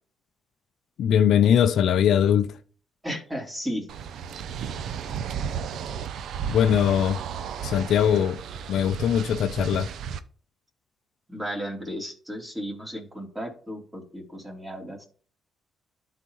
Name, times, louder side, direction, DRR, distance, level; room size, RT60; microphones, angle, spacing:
voice 1, 1.0-2.6 6.5-7.2 7.6-8.4 8.7-9.9, left 9 dB, 70° left, 0.4 m, -21 dB
voice 2, 3.0-3.9 11.3-15.1, equal, 10° right, 3.1 m, -34 dB
sound 1, 3.9-10.2, right 7 dB, 70° right, 0.6 m, -34 dB
12.0 x 4.1 x 3.1 m
cardioid pair, 90°, 0 cm